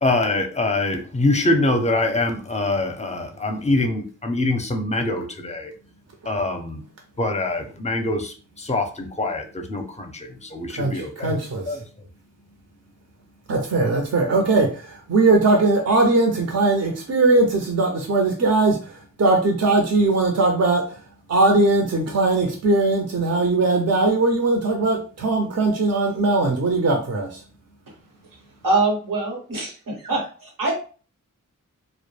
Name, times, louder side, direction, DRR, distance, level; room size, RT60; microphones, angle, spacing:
voice 1, 0.0-5.7 6.3-6.8 7.2-11.4 11.7-11.8, left 2 dB, 20° left, 5 dB, 0.5 m, -24 dB
voice 2, 10.7-11.8 13.5-21.0 21.3-27.4, right 2 dB, 50° right, 2 dB, 0.6 m, -20 dB
voice 3, 28.6-30.7, right 3 dB, 90° right, -1 dB, 1.0 m, -24 dB
2.2 x 2.0 x 3.1 m, 0.38 s
cardioid pair, 45°, 32 cm